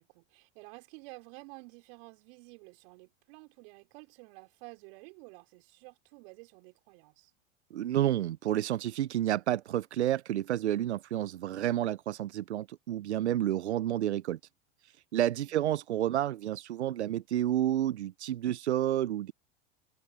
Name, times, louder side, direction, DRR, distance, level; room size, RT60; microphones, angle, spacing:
voice 1, 0.0-7.3 15.4-15.7, right 29 dB, 60° right, 5.1 m, -52 dB
voice 2, 7.7-14.4 15.1-19.3, right 12 dB, 80° right, 0.8 m, -30 dB
hypercardioid pair, 85°, 33 cm